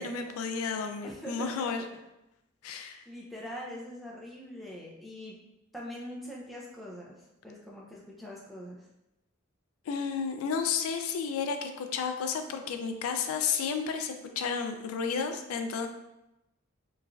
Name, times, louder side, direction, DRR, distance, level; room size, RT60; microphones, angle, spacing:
voice 1, 0.0-1.8 2.6-3.0 9.9-15.9, left 6 dB, 85° left, 7 dB, 0.3 m, -32 dB
voice 2, 1.0-1.9 3.1-5.4 5.7-8.9, equal, ahead, -4 dB, 0.3 m, -43 dB
3.1 x 2.3 x 2.3 m, 0.91 s
head